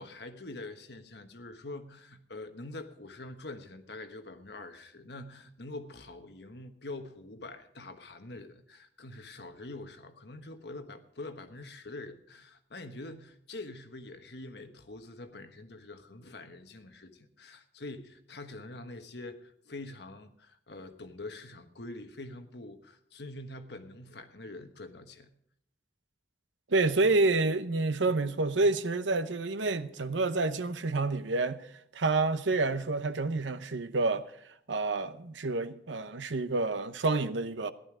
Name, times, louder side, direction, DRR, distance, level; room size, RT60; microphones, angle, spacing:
voice 1, 0.0-25.3, left 2 dB, 65° left, 1.3 m, -45 dB
voice 2, 26.7-34.3 34.7-37.7, right 3 dB, 90° right, 0.9 m, -28 dB
14.5 x 11.5 x 5.0 m
head